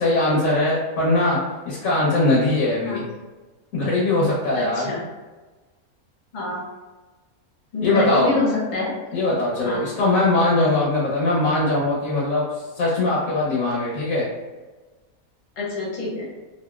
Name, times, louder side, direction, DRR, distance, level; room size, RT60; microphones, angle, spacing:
voice 1, 0.0-1.4 1.7-3.0 3.7-4.9 7.8-8.3 9.1-12.4 12.8-14.2, left 2 dB, 70° left, -5 dB, 1.1 m, -21 dB
voice 2, 4.5-5.0 6.3-6.6 7.7-8.9 9.6-9.8 15.6-16.3, left 3 dB, 40° left, -5 dB, 0.8 m, -26 dB
2.9 x 2.6 x 2.2 m, 1.2 s
omnidirectional pair, 1.5 m